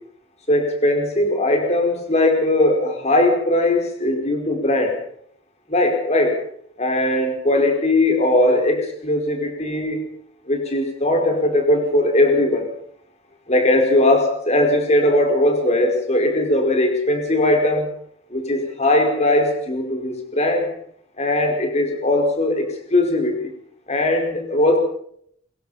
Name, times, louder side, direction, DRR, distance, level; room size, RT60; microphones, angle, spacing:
voice 1, 0.5-4.9 5.7-6.3 6.8-10.0 10.5-12.7 13.5-17.9 18.3-20.7 21.2-23.5 23.9-24.8, left 1 dB, 35° left, 3 dB, 5.0 m, -19 dB
23.5 x 22.0 x 5.8 m, 0.67 s
head